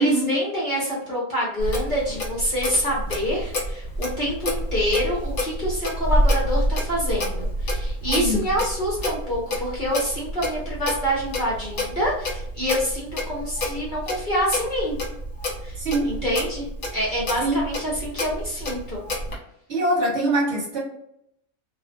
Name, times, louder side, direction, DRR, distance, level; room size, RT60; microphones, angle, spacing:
voice 1, 0.0-15.0 15.6-15.8 16.0-16.7 16.9-19.0, equal, 40° left, -6 dB, 0.9 m, -26 dB
Clock, 1.6-19.4, equal, 60° left, 1.3 m, -28 dB
voice 2, 15.8-16.1 17.4-17.6 19.7-20.8, right 1 dB, 55° right, -3 dB, 1.0 m, -22 dB
2.5 x 2.4 x 2.4 m, 0.75 s
omnidirectional pair, 1.5 m